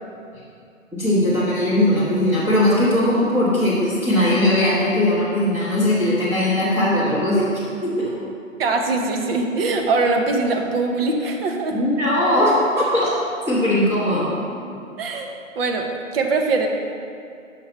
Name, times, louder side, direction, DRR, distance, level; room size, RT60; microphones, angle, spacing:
voice 1, 0.9-7.5 7.8-8.1 11.7-13.1 13.5-14.3, left 1 dB, 5° right, -11 dB, 1.4 m, -19 dB
voice 2, 8.6-11.8 15.0-15.3 15.6-16.7, right 3 dB, 45° right, 3 dB, 1.0 m, -22 dB
6.5 x 5.7 x 5.4 m, 2.4 s
hypercardioid pair, 135°, 40 cm